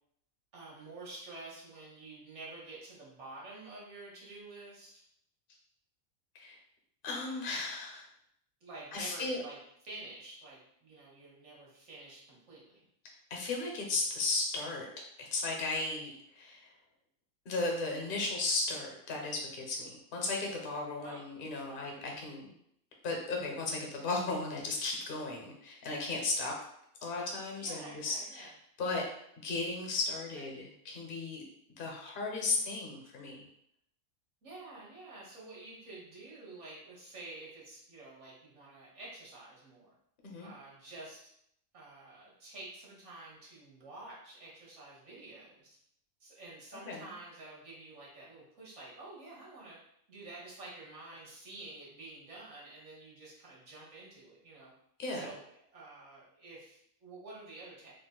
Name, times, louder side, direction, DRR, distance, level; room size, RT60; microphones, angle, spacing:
voice 1, 0.5-5.0 8.6-9.6 9.8-12.9 21.0-21.2 21.7-21.9 27.6-28.5 30.4-30.5 34.4-39.9 40.4-41.3 41.7-45.8 46.2-49.8 50.1-54.7 55.1-55.4 55.7-57.9, right 2 dB, 60° right, -5 dB, 1.3 m, -49 dB
voice 2, 7.0-8.1 8.9-9.4 13.3-14.9 15.2-16.7 17.5-22.5 23.0-26.5 27.0-28.5 28.8-29.0 29.4-31.4 31.8-33.5 40.2-40.5 46.9-47.1 55.0-55.2, left 3 dB, 50° left, 0 dB, 0.8 m, -35 dB
3.9 x 2.4 x 2.3 m, 0.72 s
omnidirectional pair, 1.4 m